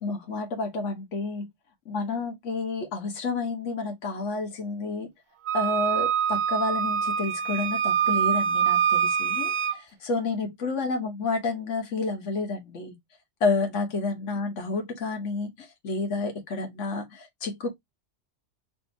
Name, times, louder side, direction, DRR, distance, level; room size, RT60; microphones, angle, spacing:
voice 1, 0.0-1.5 1.8-5.1 5.5-12.9 13.4-17.7, left 3 dB, 80° left, 1.4 m, -30 dB
Wind instrument woodwind instrument, 5.5-9.8, right 8 dB, 60° right, 0.5 m, -25 dB
5.1 x 2.7 x 2.6 m
omnidirectional pair, 1.3 m